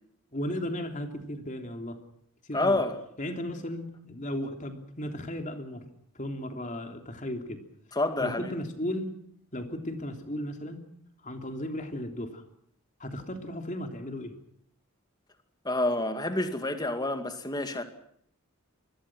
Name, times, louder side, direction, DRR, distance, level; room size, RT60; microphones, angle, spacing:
voice 1, 0.3-2.0 2.4-2.8 3.2-5.9 6.1-7.6 8.2-9.2 9.5-10.9 11.2-12.4 13.0-14.3, left 1 dB, 35° left, 3.2 m, -35 dB
voice 2, 2.5-3.0 7.9-8.5 15.6-17.8, left 2 dB, 20° left, 2.2 m, -28 dB
26.0 x 22.0 x 6.2 m
head